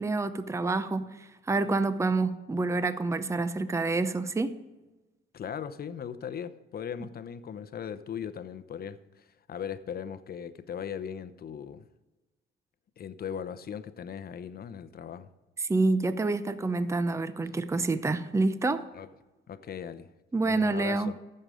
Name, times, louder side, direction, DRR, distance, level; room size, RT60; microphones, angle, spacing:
voice 1, 0.0-4.5 15.6-18.8 20.3-21.1, right 3 dB, 15° right, 0.7 m, -28 dB
voice 2, 5.3-11.8 13.0-15.3 18.9-19.1 19.5-20.1 20.4-21.1, left 8 dB, 50° left, 0.8 m, -38 dB
15.0 x 6.6 x 5.0 m
cardioid pair, 90°, 20 cm